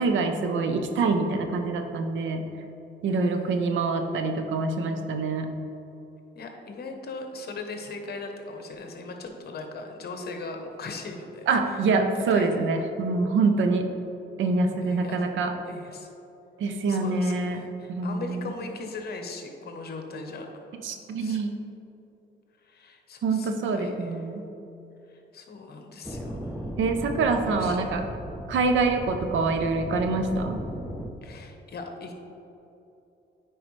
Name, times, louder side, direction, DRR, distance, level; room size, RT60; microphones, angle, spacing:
voice 1, 0.0-2.4 3.0-5.5 11.5-13.9 14.4-15.5 16.6-17.6 17.9-18.5 20.8-21.6 23.2-24.5 26.8-28.0 28.5-30.6, right 3 dB, 75° right, 6 dB, 0.7 m, -25 dB
voice 2, 3.1-3.9 6.3-11.8 12.1-12.6 14.8-15.2 15.6-16.1 16.6-21.4 22.6-24.2 25.1-26.6 27.4-27.8 31.2-32.1, left 3 dB, 55° left, 4 dB, 1.0 m, -39 dB
sound 1, 26.0-31.1, equal, ahead, 0.6 m, -37 dB
8.9 x 4.7 x 3.2 m, 2.9 s
cardioid pair, 90°, 20 cm